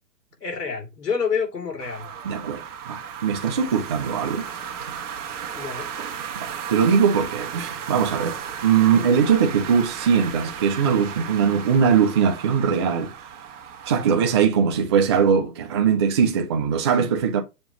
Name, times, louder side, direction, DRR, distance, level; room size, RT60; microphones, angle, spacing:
voice 1, 0.4-2.1 5.5-5.9, left 6 dB, 80° left, 3.1 m, -28 dB
sound 1, 1.8-14.5, right 8 dB, 50° right, 1.6 m, -35 dB
voice 2, 2.2-4.5 6.3-13.1 13.8-17.4, right 7 dB, 20° right, 0.5 m, -21 dB
7.0 x 3.0 x 5.1 m
hypercardioid pair, 145°, 47 cm